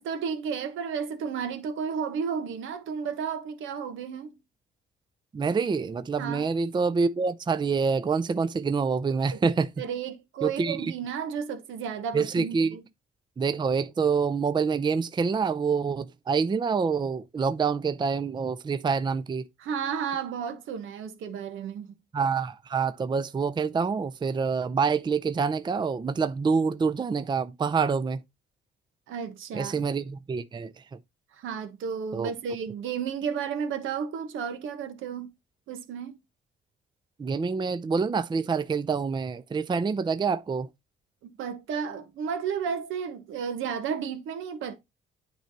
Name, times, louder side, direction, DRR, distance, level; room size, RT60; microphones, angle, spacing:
voice 1, 0.0-4.4 6.2-6.5 9.3-9.4 9.8-12.8 19.6-21.9 29.1-29.7 31.3-35.3 35.7-36.2 41.2-44.7, right 7 dB, 85° right, 1.3 m, -33 dB
voice 2, 5.3-9.7 10.4-10.9 12.1-12.8 13.4-19.5 22.1-28.2 29.5-30.7 32.1-32.3 37.2-40.7, right 5 dB, 20° right, 0.5 m, -26 dB
9.2 x 3.4 x 4.0 m
cardioid pair, 90°, 20 cm